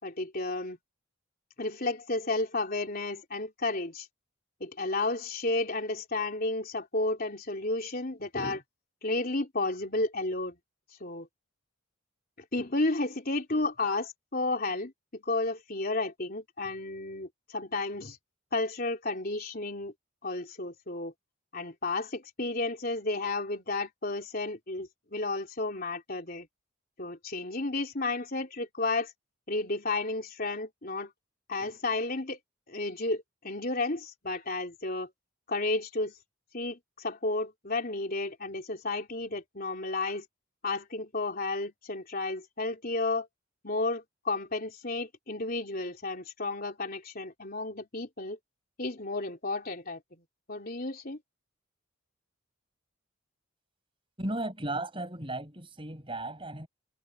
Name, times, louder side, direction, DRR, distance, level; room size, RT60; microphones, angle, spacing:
voice 1, 0.0-0.8 1.6-4.1 4.6-8.6 9.0-10.6 11.0-11.3 12.5-18.2 18.5-19.9 20.2-21.1 21.5-26.5 27.0-29.1 29.5-31.1 31.5-32.4 32.7-35.1 35.5-36.1 36.5-40.3 40.6-43.3 43.6-48.4 48.8-50.0 50.5-51.2, left 2 dB, 40° left, 3.7 m, -32 dB
voice 2, 54.2-56.7, right 2 dB, 25° right, 7.0 m, -35 dB
head